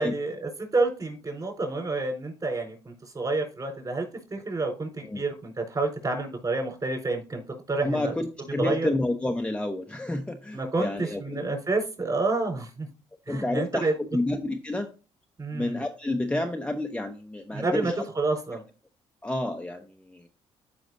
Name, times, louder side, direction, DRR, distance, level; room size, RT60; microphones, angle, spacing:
voice 1, 0.0-4.0 4.3-7.4 7.7-8.1 8.6-8.9 10.5-12.9 13.3-13.9 15.4-15.8 17.5-18.6, right 3 dB, 35° right, 3 dB, 4.3 m, -29 dB
voice 2, 7.8-11.4 13.3-14.9 15.5-18.0 19.2-20.3, left 1 dB, 10° left, 4 dB, 0.8 m, -30 dB
13.0 x 5.1 x 2.6 m, 0.35 s
cardioid pair, 75°, 12 cm